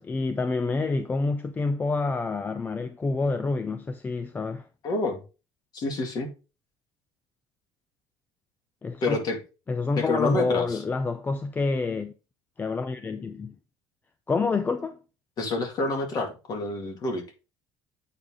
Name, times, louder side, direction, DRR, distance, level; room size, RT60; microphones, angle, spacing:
voice 1, 0.0-4.7 8.8-9.2 9.7-12.1 12.6-13.5 14.3-15.0, left 3 dB, 20° left, 0.5 m, -27 dB
voice 2, 4.8-5.2 5.7-6.3 9.0-9.4 10.0-10.8 15.4-17.2, left 3 dB, 40° left, 2.3 m, -28 dB
8.5 x 4.8 x 3.7 m
cardioid pair, 140°, 10 cm